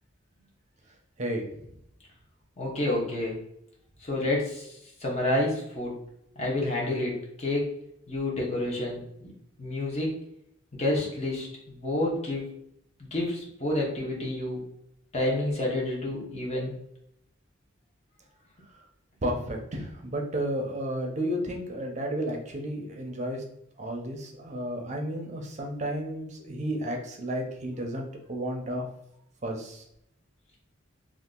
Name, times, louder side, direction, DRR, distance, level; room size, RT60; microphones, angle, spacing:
voice 1, 2.6-3.3 4.0-4.7 5.0-5.9 6.4-7.7 8.1-9.3 9.6-10.1 10.8-12.6 13.0-14.7 15.1-16.7, left 1 dB, 35° left, -3 dB, 0.8 m, -29 dB
voice 2, 19.2-23.4 23.8-28.9 29.4-29.8, right 1 dB, 35° right, 1 dB, 0.6 m, -32 dB
2.8 x 2.4 x 3.7 m, 0.77 s
head